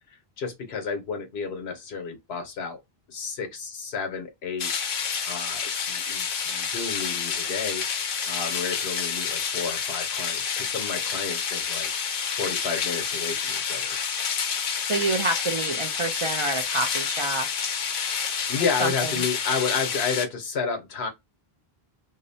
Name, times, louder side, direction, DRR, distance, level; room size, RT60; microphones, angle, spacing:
voice 1, 0.1-2.8 3.1-4.7 5.3-7.8 8.2-11.9 12.4-14.0 18.5-21.1, left 5 dB, 85° left, 1.1 m, -31 dB
sound 1, 4.6-20.2, left 6 dB, 65° left, 0.7 m, -29 dB
voice 2, 14.9-17.5 18.8-18.9, right 2 dB, 55° right, 0.3 m, -27 dB
2.6 x 2.0 x 2.6 m
omnidirectional pair, 1.0 m